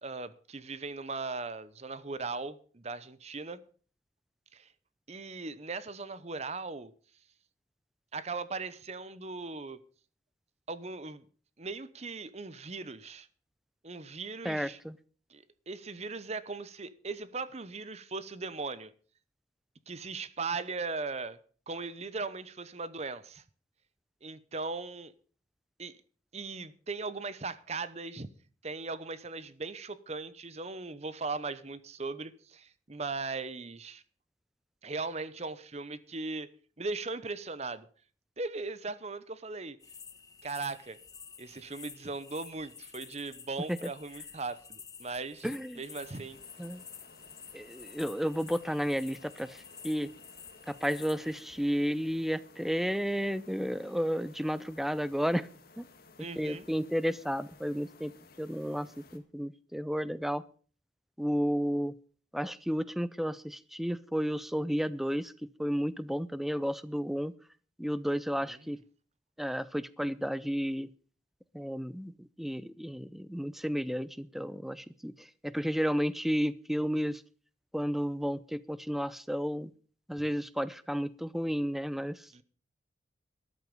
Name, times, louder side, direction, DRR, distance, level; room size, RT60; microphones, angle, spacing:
voice 1, 0.0-3.6 4.5-4.7 5.1-6.9 8.1-9.8 10.7-11.3 11.6-13.3 13.8-14.8 15.3-18.9 19.9-21.4 21.7-23.4 24.2-25.1 25.8-25.9 26.3-28.3 28.6-34.0 34.8-36.5 36.8-37.9 38.4-39.8 40.4-41.0 41.4-45.5 45.8-46.4 56.2-56.6 68.4-68.6 82.3-82.4, right 3 dB, 35° right, 0.9 m, -38 dB
voice 2, 14.4-15.0 43.7-43.8 45.4-45.8 46.6-46.8 47.5-50.1 50.7-55.5 55.8-55.9 56.4-58.1 58.4-60.4 61.2-61.9 62.3-67.3 67.8-68.8 69.4-70.9 71.5-77.2 77.7-79.7 80.1-82.4, equal, ahead, 0.5 m, -32 dB
sound 1, 39.8-51.4, left 6 dB, 20° left, 1.1 m, -50 dB
sound 2, 45.9-59.2, left 3 dB, 55° left, 1.9 m, -57 dB
13.5 x 11.0 x 5.3 m
head